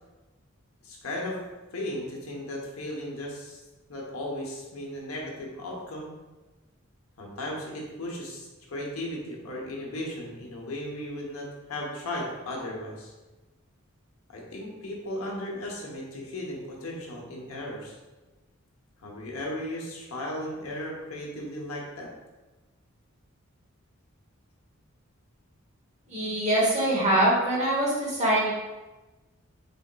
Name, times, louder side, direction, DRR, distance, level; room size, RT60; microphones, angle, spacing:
voice 1, 0.8-1.4 1.7-3.6 3.9-6.1 7.2-13.1 14.3-18.0 19.0-22.1, left 1 dB, 85° left, -2 dB, 0.8 m, -36 dB
voice 2, 26.1-28.5, right 1 dB, 35° right, -5 dB, 1.0 m, -23 dB
3.8 x 3.5 x 2.2 m, 1.1 s
head